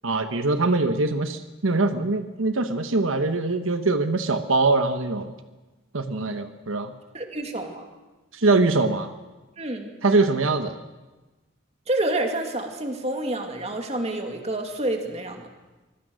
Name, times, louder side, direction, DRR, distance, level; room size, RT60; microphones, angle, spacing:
voice 1, 0.0-5.3 5.9-6.9 8.3-9.1 10.0-10.7, right 3 dB, 85° right, 8 dB, 1.1 m, -23 dB
voice 2, 7.1-7.8 9.6-9.9 11.9-15.5, right 1 dB, 30° right, 4 dB, 2.5 m, -28 dB
25.5 x 21.0 x 6.4 m, 1.2 s
head